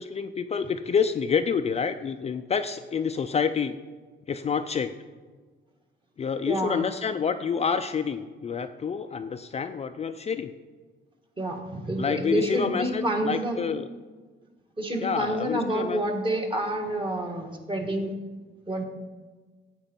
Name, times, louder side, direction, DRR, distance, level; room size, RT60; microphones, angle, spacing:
voice 1, 0.0-3.7 4.3-4.9 6.2-10.5 12.0-13.9 15.0-16.0, left 6 dB, 30° left, 8 dB, 0.4 m, -28 dB
voice 2, 6.5-6.8 11.4-13.6 14.8-18.1 18.7-18.8, right 1 dB, 25° right, 2 dB, 1.6 m, -28 dB
9.7 x 7.8 x 4.4 m, 1.4 s
cardioid pair, 90°, 20 cm